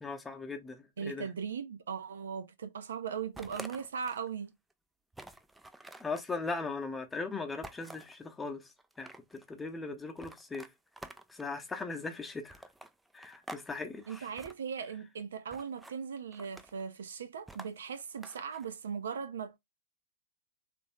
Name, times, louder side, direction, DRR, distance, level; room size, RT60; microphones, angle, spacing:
voice 1, 0.0-1.3 6.0-8.7 9.0-10.7 11.3-12.6 13.1-14.3, left 4 dB, 10° left, 0.8 m, -39 dB
voice 2, 1.0-4.5 14.1-19.6, right 6 dB, 60° right, 0.5 m, -39 dB
sound 1, 3.4-4.3 4.7-4.8 5.1-6.3 7.6-8.2 8.8-9.5 10.2-11.5 12.5-13.7 13.9-14.5 15.5-16.0 16.3-16.8 17.5-18.7, right 2 dB, 5° right, 0.4 m, -49 dB
3.3 x 3.0 x 3.0 m
figure-of-eight pair, 100°, 0 cm